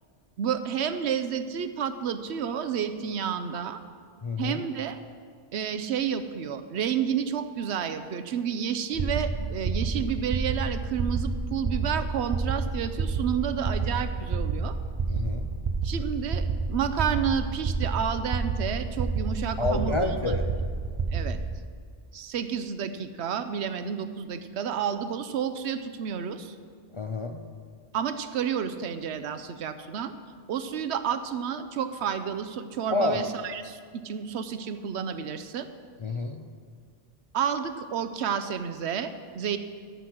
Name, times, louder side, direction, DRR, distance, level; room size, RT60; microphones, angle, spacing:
voice 1, 0.4-3.8 4.4-5.0 5.5-14.8 15.8-20.2 21.1-21.4 22.1-26.6 27.9-30.1 30.5-35.7 37.3-39.6, right 8 dB, 80° right, 10 dB, 0.9 m, -30 dB
voice 2, 4.2-4.6 15.1-15.5 19.6-20.5 26.9-27.4 32.9-33.2 36.0-36.5, left 3 dB, 40° left, 5 dB, 0.4 m, -29 dB
sound 1, 8.9-21.6, right 4 dB, 40° right, 0.4 m, -29 dB
13.5 x 6.3 x 5.9 m, 2.1 s
omnidirectional pair, 1.1 m